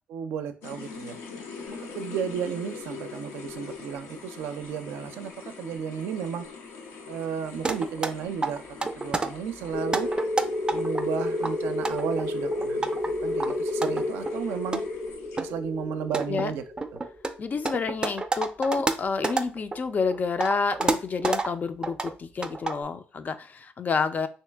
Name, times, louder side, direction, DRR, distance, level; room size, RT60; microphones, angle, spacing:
voice 1, 0.1-1.2 1.8-6.5 7.1-10.1 10.7-12.9 13.2-14.8 15.4-16.6 16.9-17.0, right 7 dB, 85° right, 8 dB, 0.4 m, -33 dB
sound 1, 0.6-15.7, left 5 dB, 85° left, 0.6 m, -43 dB
sound 2, 7.7-8.1 8.4-9.3 9.8-11.0 11.4-13.1 13.4-14.3 14.7-14.8 15.4-15.5 15.9-19.8 20.1-21.5 21.8-22.1 22.4-22.8, right 3 dB, 20° right, 0.4 m, -28 dB
sound 3, 9.7-18.1, left 2 dB, 60° left, 1.0 m, -31 dB
voice 2, 17.4-24.3, left 5 dB, 45° left, 11 dB, 0.4 m, -29 dB
3.0 x 2.8 x 3.3 m, 0.38 s
cardioid pair, 75°, 4 cm